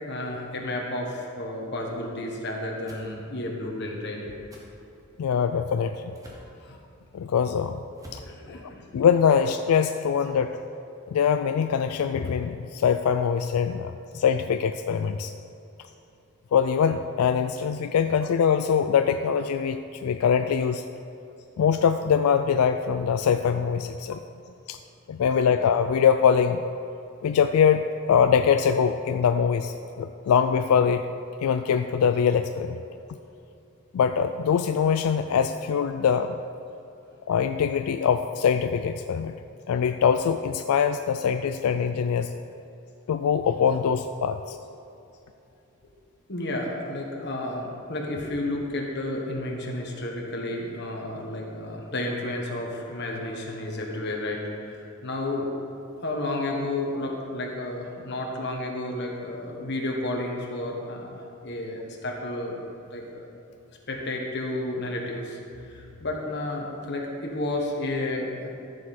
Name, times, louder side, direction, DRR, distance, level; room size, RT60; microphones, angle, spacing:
voice 1, 0.1-4.4 6.6-6.8 8.3-8.8 25.5-25.6 46.3-55.5 56.0-62.6 62.9-63.3 63.9-68.5, left 1 dB, 50° left, -1 dB, 1.5 m, -32 dB
sound 1, 2.9-3.1 4.5-4.7 6.1-6.5 7.9-8.3, equal, 15° right, 1.3 m, -46 dB
voice 2, 5.2-6.1 7.1-7.8 8.1-8.2 8.5-10.5 11.1-15.3 16.5-20.8 21.6-24.2 24.7-24.8 25.1-26.6 27.2-31.0 31.4-32.8 33.9-36.3 37.3-39.3 39.7-42.3 43.1-44.6, left 7 dB, 85° left, 8 dB, 0.3 m, -23 dB
14.0 x 6.8 x 4.3 m, 2.6 s
head